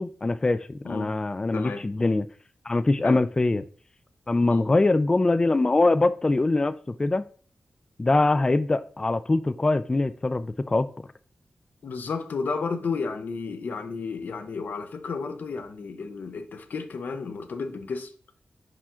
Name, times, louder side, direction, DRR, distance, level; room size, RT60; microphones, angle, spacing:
voice 1, 0.0-2.2 2.7-3.6 4.3-7.2 8.0-10.9, left 2 dB, 25° left, 0.3 m, -23 dB
voice 2, 0.8-1.2 1.5-1.9 3.0-3.2 4.5-4.6 11.8-18.1, left 4 dB, 70° left, 0.7 m, -32 dB
5.6 x 4.9 x 3.7 m
wide cardioid pair, 100°, 3 cm